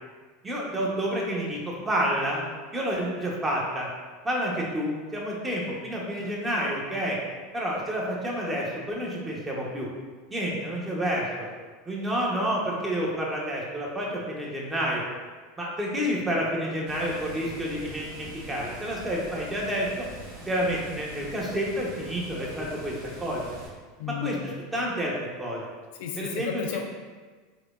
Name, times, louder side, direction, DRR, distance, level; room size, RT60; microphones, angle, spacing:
voice 1, 0.4-2.4 2.7-3.9 4.2-7.2 7.5-9.9 10.3-11.5 11.8-15.0 15.6-20.1 20.5-22.9 23.2-23.5 24.1-25.7 26.2-26.6, equal, 15° right, -3 dB, 0.9 m, -29 dB
Water, 16.9-23.7, right 1 dB, 80° right, 1.0 m, -43 dB
voice 2, 24.0-24.6 26.0-26.8, left 7 dB, 70° left, 3 dB, 0.4 m, -33 dB
4.8 x 2.1 x 2.4 m, 1.4 s
hypercardioid pair, 90°, 0 cm